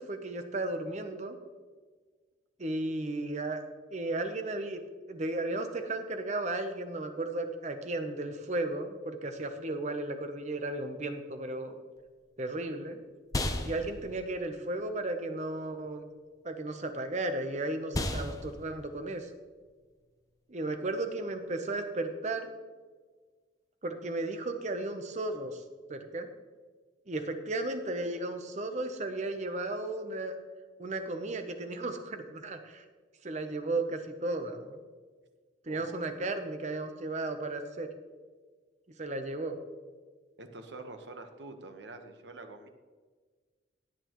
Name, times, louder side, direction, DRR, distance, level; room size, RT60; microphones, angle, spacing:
voice 1, 0.0-1.4 2.6-3.6 3.9-4.8 5.1-11.8 12.4-13.0 13.6-16.0 16.4-19.3 20.5-22.5 23.8-25.6 25.9-26.3 27.1-30.3 30.8-32.8 33.2-34.8 35.6-37.9 39.0-39.6, right 2 dB, 40° right, 7 dB, 0.8 m, -34 dB
sound 1, 12.0-21.6, left 1 dB, 20° left, 0.8 m, -39 dB
voice 2, 35.6-36.1 40.4-42.7, right 2 dB, 75° right, 6 dB, 1.2 m, -46 dB
17.0 x 8.7 x 3.1 m, 1.5 s
head